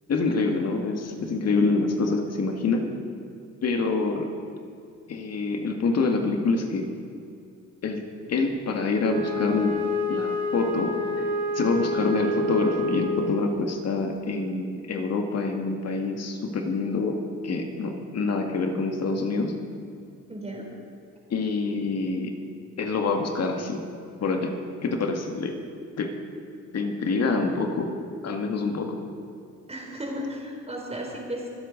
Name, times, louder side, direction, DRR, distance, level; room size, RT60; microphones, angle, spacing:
voice 1, 0.1-2.9 3.6-4.3 5.1-6.9 7.8-8.0 8.3-9.8 10.1-11.0 11.5-19.5 21.3-22.3 22.8-23.8 24.2-24.5 24.8-25.5 26.0-26.1 26.7-27.9 28.2-29.0, left 3 dB, 55° left, 3 dB, 2.0 m, -26 dB
Wind instrument woodwind instrument, 9.0-13.6, left 1 dB, 70° right, 2.7 m, -28 dB
voice 2, 20.3-20.7 29.7-31.5, equal, 20° right, 0 dB, 4.0 m, -35 dB
24.5 x 8.1 x 5.3 m, 2.4 s
cardioid pair, 90°, 30 cm